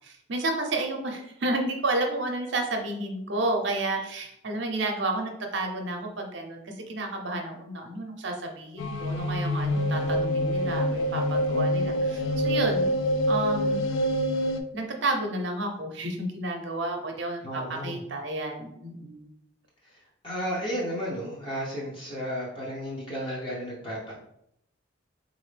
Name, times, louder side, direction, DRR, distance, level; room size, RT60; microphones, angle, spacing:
voice 1, 0.0-12.9 13.3-13.8 14.7-19.2, right 2 dB, 65° right, 2 dB, 0.7 m, -31 dB
sound 1, 8.8-14.6, equal, 80° left, 0.4 m, -26 dB
voice 2, 17.4-18.0 19.8-24.1, equal, 25° left, -5 dB, 0.7 m, -33 dB
4.1 x 2.6 x 3.3 m, 0.75 s
head